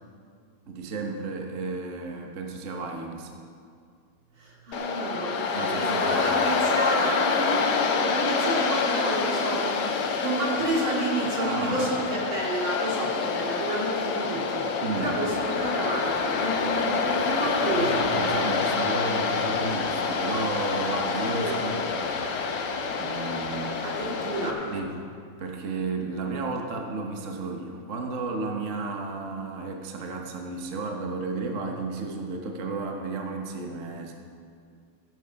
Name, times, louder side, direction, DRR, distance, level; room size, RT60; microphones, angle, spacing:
voice 1, 0.7-3.3 5.5-6.5 11.4-11.9 14.8-15.1 17.7-22.1 23.0-23.8 24.7-24.9 25.4-34.1, right 3 dB, 45° right, 2 dB, 1.1 m, -33 dB
voice 2, 4.4-18.1 21.2-21.7 23.8-24.6, right 2 dB, 70° right, -4 dB, 3.3 m, -30 dB
Waves surf, 4.7-24.5, left 4 dB, 60° left, 1.4 m, -27 dB
sound 1, 15.3-24.8, left 4 dB, 90° left, 2.1 m, -43 dB
15.5 x 8.0 x 5.7 m, 2.2 s
omnidirectional pair, 2.3 m